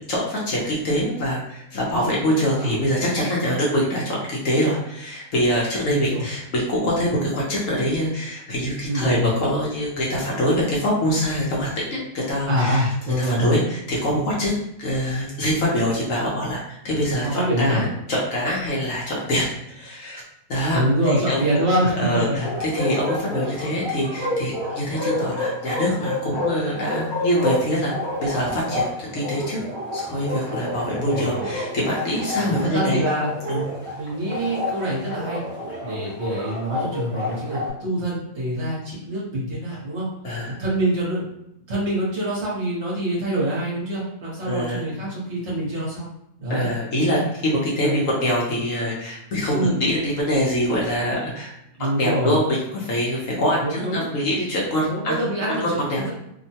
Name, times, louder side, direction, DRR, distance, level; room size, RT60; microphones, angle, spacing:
voice 1, 0.1-12.9 13.2-14.5 14.8-20.2 20.5-20.8 21.1-21.6 22.0-27.9 28.2-29.6 29.9-33.0 33.5-33.6 40.2-40.6 44.4-44.8 46.5-51.5 52.0-55.2 55.5-56.1, equal, 65° left, -4 dB, 1.0 m, -24 dB
voice 2, 5.9-6.2 8.9-9.3 12.4-13.6 17.2-17.8 20.7-22.4 23.6-23.7 30.9-31.5 32.5-33.3 34.0-35.4 35.8-40.1 40.5-41.3 41.7-46.1 46.4-46.7 47.8-48.1 49.5-49.8 51.8-52.4 53.6-54.1 54.8-56.1, right 1 dB, 50° right, -6 dB, 1.1 m, -25 dB
Bark, 22.4-37.7, left 1 dB, 20° right, 0.9 m, -29 dB
2.9 x 2.2 x 2.7 m, 0.81 s
omnidirectional pair, 1.7 m